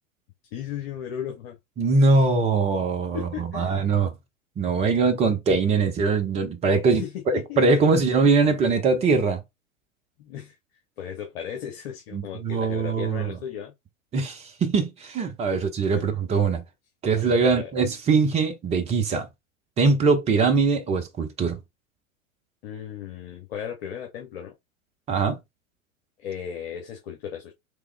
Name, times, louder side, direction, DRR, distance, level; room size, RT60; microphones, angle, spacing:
voice 1, 0.5-1.5 3.1-3.9 6.8-8.2 10.2-10.5 11.0-13.7 15.5-15.6 16.0-16.2 17.4-17.7 22.6-24.5 26.2-27.5, left 9 dB, 45° left, 1.1 m, -36 dB
voice 2, 1.8-4.1 4.6-9.4 12.1-13.3 14.1-16.6 17.0-19.3 19.8-21.6 25.1-25.4, right 4 dB, 15° right, 0.8 m, -22 dB
3.6 x 3.3 x 3.3 m
figure-of-eight pair, 100°, 41 cm